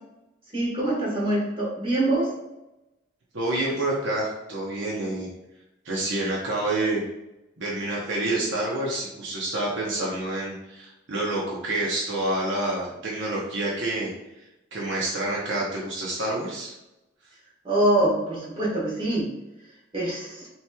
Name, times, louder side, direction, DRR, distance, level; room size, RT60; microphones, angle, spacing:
voice 1, 0.5-2.3 17.6-19.3 19.9-20.5, right 1 dB, 25° right, -5 dB, 1.4 m, -24 dB
voice 2, 3.3-5.3 5.8-7.0 7.6-14.1 14.7-16.7, right 2 dB, 60° right, -4 dB, 0.9 m, -28 dB
5.6 x 3.1 x 2.3 m, 0.93 s
head